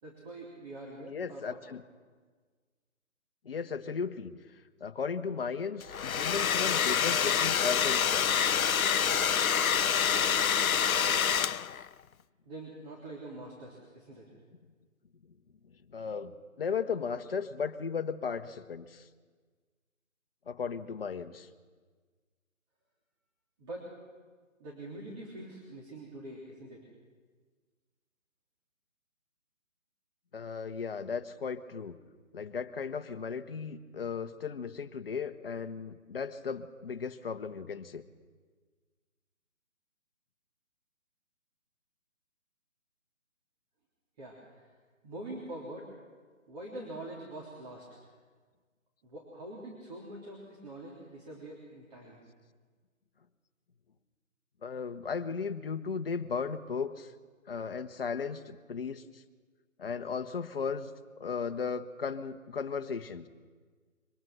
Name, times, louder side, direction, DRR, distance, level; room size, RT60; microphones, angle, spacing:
voice 1, 0.0-1.6 12.4-14.2 23.6-23.9 24.6-26.9 44.2-44.7 45.0-45.9 46.5-48.0 49.0-52.2, right 1 dB, 30° right, -3 dB, 3.4 m, -44 dB
voice 2, 1.0-1.8 3.4-4.3 4.8-8.3 15.9-16.3 16.6-19.1 20.5-21.5 30.3-32.0 32.3-38.0 54.6-57.1 57.5-59.2 59.8-60.9 61.2-63.3, left 6 dB, 45° left, 8 dB, 1.1 m, -36 dB
Domestic sounds home sounds, 5.8-11.9, left 8 dB, 80° left, 0.6 m, -27 dB
23.0 x 21.0 x 6.1 m, 1.5 s
figure-of-eight pair, 155°, 41 cm